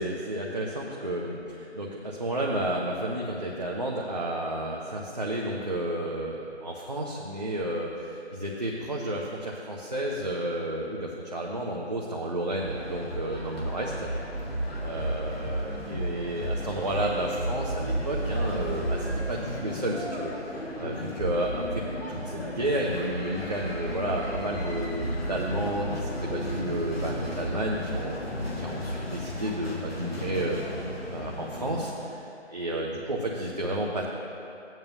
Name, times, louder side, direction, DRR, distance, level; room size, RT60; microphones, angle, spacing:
voice 1, 0.0-14.1 14.8-34.0, right 1 dB, 35° right, -3 dB, 0.7 m, -31 dB
sound 1, 12.5-31.9, equal, 55° left, 1.6 m, -33 dB
14.0 x 8.9 x 2.7 m, 2.7 s
figure-of-eight pair, 165°, 36 cm